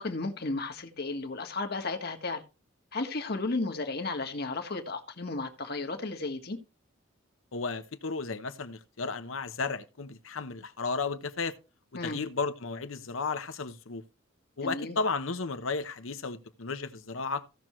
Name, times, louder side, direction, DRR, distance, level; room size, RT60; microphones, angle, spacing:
voice 1, 0.0-2.4 2.9-6.6 11.9-12.2 14.6-15.0, left 3 dB, 50° left, 1.5 m, -34 dB
voice 2, 7.5-11.5 12.0-14.0 14.6-17.4, left 4 dB, 80° left, 1.0 m, -34 dB
16.0 x 6.1 x 3.1 m
head